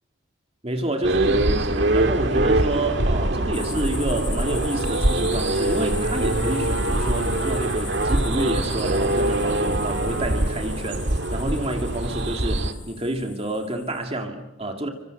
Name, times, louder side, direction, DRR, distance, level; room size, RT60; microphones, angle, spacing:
voice 1, 0.6-14.9, right 1 dB, 30° right, 2.3 m, -28 dB
sound 1, 1.0-12.7, right 1 dB, 55° right, 1.9 m, -23 dB
sound 2, 3.5-14.0, left 5 dB, 20° left, 7.1 m, -39 dB
29.5 x 25.0 x 6.5 m
head